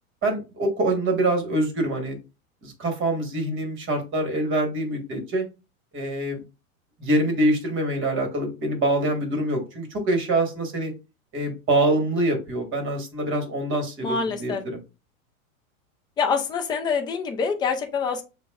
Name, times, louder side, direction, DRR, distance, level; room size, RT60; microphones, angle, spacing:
voice 1, 0.2-2.2 2.6-5.5 5.9-6.4 7.0-10.9 11.3-14.8, right 1 dB, 30° right, 4 dB, 1.5 m, -25 dB
voice 2, 14.0-14.6 16.2-18.2, left 5 dB, 10° left, 5 dB, 0.3 m, -25 dB
6.5 x 2.3 x 2.3 m, 0.29 s
hypercardioid pair, 120°, 42 cm